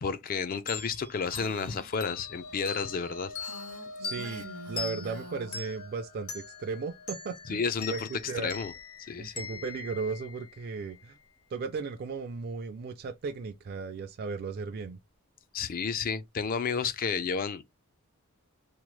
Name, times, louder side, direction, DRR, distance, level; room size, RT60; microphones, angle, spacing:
voice 1, 0.0-3.3 7.5-8.1 8.4-8.7 9.1-9.3 15.5-17.6, left 5 dB, 40° left, 0.4 m, -31 dB
sound 1, 0.7-10.9, left 5 dB, 70° left, 1.4 m, -42 dB
Female speech woman speaking, 1.3-1.9 3.4-5.6, right 1 dB, 80° right, 0.8 m, -45 dB
sound 2, 1.8-10.2, left 1 dB, 85° left, 1.2 m, -49 dB
voice 2, 4.0-7.6 7.9-8.6 9.2-11.1 11.5-15.0, right 4 dB, 45° right, 0.3 m, -36 dB
3.0 x 2.1 x 3.0 m
head